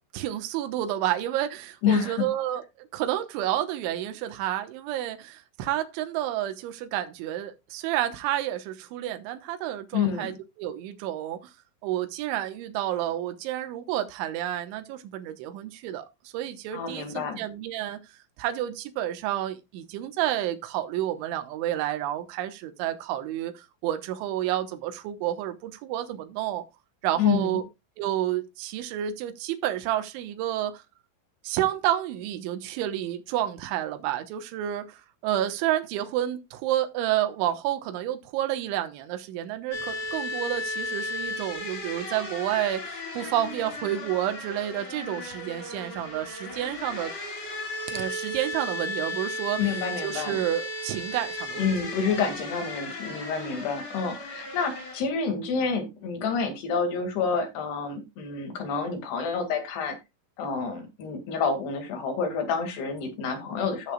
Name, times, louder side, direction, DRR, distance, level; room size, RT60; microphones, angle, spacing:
voice 1, 0.1-11.5 11.8-18.0 18.4-26.6 27.0-27.6 28.0-30.8 31.4-47.1 47.9-49.7 50.0-51.7, right 12 dB, 80° right, 3.3 m, -30 dB
voice 2, 1.8-2.3 9.9-10.3 16.7-17.4 27.2-27.5 49.6-50.4 51.6-60.0 60.4-63.9, left 5 dB, 60° left, 3.8 m, -28 dB
sound 1, 39.7-54.9, left 2 dB, 45° left, 4.2 m, -35 dB
16.5 x 6.8 x 2.3 m
omnidirectional pair, 5.7 m